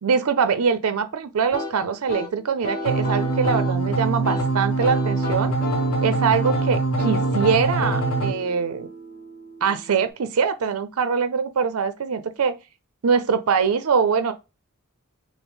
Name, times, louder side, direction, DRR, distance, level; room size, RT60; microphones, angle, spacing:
voice 1, 0.0-5.5 6.0-8.9 9.6-12.5 13.0-14.3, right 6 dB, 80° right, 0.5 m, -23 dB
sound 1, 1.5-10.1, left 2 dB, 45° left, 1.2 m, -33 dB
sound 2, 2.8-8.3, right 3 dB, 75° left, 0.7 m, -24 dB
5.9 x 2.0 x 3.5 m
head